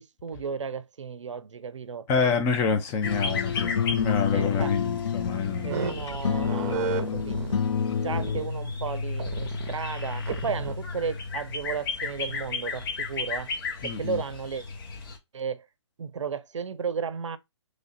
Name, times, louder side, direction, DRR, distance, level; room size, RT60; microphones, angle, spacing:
voice 1, 0.0-2.1 4.3-4.7 5.6-7.4 8.0-13.5 13.8-14.6 15.3-15.7 16.0-17.4, right 6 dB, 80° right, 0.5 m, -34 dB
voice 2, 2.1-5.8 13.8-14.2, left 5 dB, 15° left, 0.5 m, -27 dB
sound 1, 3.0-8.5, left 7 dB, 90° left, 0.4 m, -29 dB
sound 2, 3.0-15.2, left 4 dB, 50° left, 1.0 m, -34 dB
sound 3, 5.7-7.6 8.1-8.4 9.2-9.7 10.3-10.8, right 6 dB, 35° right, 0.7 m, -32 dB
3.2 x 2.5 x 4.1 m
hypercardioid pair, 145°, 15 cm